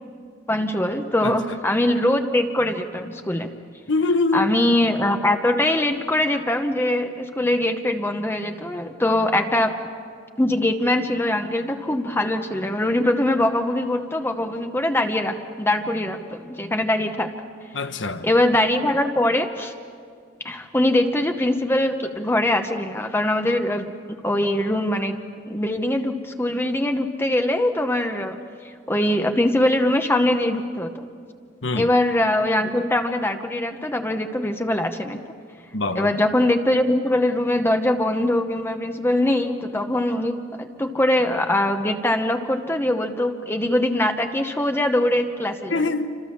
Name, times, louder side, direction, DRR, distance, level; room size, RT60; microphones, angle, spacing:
voice 1, 0.5-3.5 4.3-9.8 10.4-17.3 18.2-19.7 20.4-25.2 25.5-28.4 28.9-31.1 31.7-35.2 36.0-45.8, left 1 dB, 15° left, 6 dB, 0.9 m, -22 dB
voice 2, 1.2-1.6 3.9-4.5 17.7-18.3 31.6-31.9 35.7-36.1 45.7-46.2, left 3 dB, 85° left, 9 dB, 1.3 m, -24 dB
28.5 x 26.0 x 7.2 m, 2.2 s
head